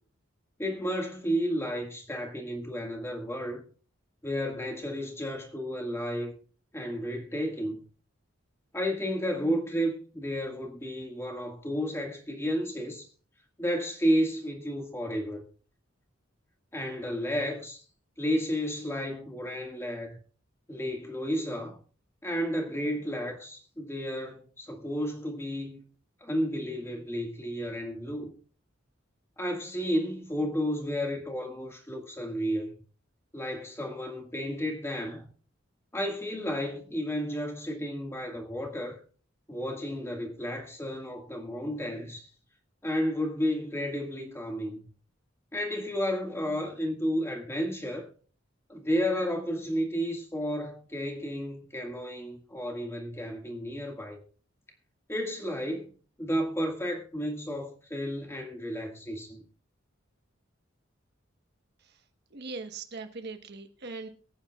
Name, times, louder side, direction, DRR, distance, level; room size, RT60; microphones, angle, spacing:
voice 1, 0.6-3.6 4.2-6.4 6.7-7.8 8.7-13.1 13.6-15.4 16.7-17.8 18.2-20.2 20.7-21.8 22.2-25.8 26.2-28.3 29.4-32.8 33.3-35.3 35.9-39.0 39.5-42.3 42.8-44.9 45.5-48.1 48.7-54.2 55.1-55.9 56.2-59.4, equal, 15° left, 1.9 m, -32 dB
voice 2, 62.3-64.1, right 3 dB, 60° right, 1.2 m, -40 dB
23.0 x 8.8 x 2.4 m
head